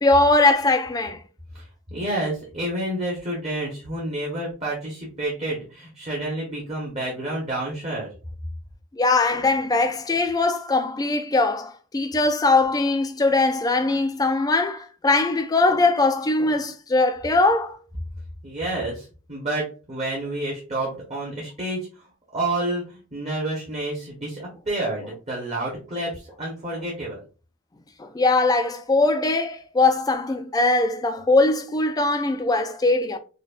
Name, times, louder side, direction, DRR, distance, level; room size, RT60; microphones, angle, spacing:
voice 1, 0.0-1.2 8.9-17.8 28.0-33.2, left 2 dB, 20° left, 0.3 m, -21 dB
voice 2, 1.6-8.1 18.4-21.9 22.3-27.2, right 1 dB, 30° right, 1.0 m, -29 dB
4.9 x 2.2 x 2.4 m
head